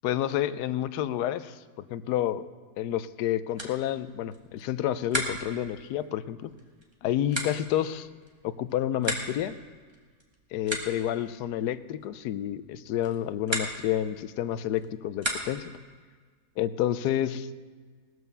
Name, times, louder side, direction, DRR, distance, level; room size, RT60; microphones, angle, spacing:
voice 1, 0.0-2.5 2.8-6.5 7.0-8.1 8.4-9.6 10.5-15.6 16.6-17.5, left 11 dB, 85° left, 14 dB, 1.2 m, -29 dB
sound 1, 3.1-15.8, right 1 dB, 20° right, 1.5 m, -38 dB
18.5 x 6.3 x 6.9 m, 1.5 s
omnidirectional pair, 1.7 m